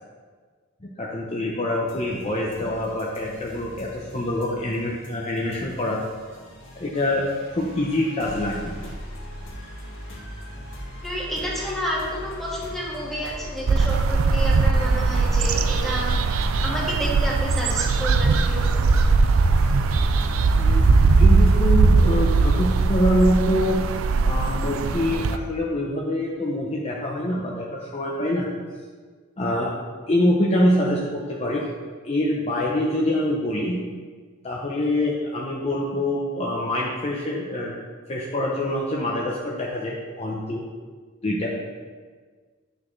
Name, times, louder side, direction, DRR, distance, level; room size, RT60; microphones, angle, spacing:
voice 1, 1.0-6.0 6.8-7.3 7.6-8.9 20.5-20.9 21.2-23.8 24.2-28.5 29.4-29.7 30.1-31.7 32.0-33.8 34.4-37.8 38.1-40.6 41.2-41.5, left 1 dB, 30° left, -3 dB, 0.7 m, -25 dB
sound 1, 1.9-21.8, equal, 70° left, 1.7 m, -39 dB
voice 2, 11.0-16.1 16.6-18.9, equal, ahead, -6 dB, 1.8 m, -30 dB
sound 2, 13.7-25.4, right 3 dB, 85° right, 0.4 m, -19 dB
8.6 x 6.5 x 3.2 m, 1.5 s
head